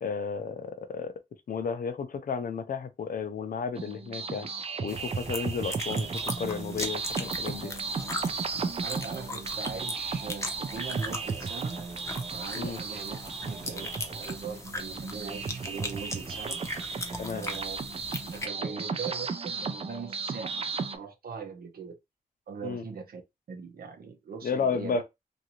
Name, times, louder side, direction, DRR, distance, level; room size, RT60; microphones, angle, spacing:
voice 1, 0.0-1.1 1.5-4.5 4.8-7.7 12.5-12.8 17.2-17.4 22.6-22.8 24.4-25.0, left 6 dB, 70° left, 0.5 m, -33 dB
sound 1, 3.8-21.0, right 5 dB, 40° right, 0.4 m, -35 dB
sound 2, 4.9-18.4, left 1 dB, 20° left, 0.6 m, -39 dB
voice 2, 8.5-11.8 12.3-13.2 13.4-16.6 17.3-17.8 18.3-22.0 22.5-23.2 23.5-25.0, right 6 dB, 80° right, 0.7 m, -41 dB
2.7 x 2.5 x 2.9 m
wide cardioid pair, 120°, 15 cm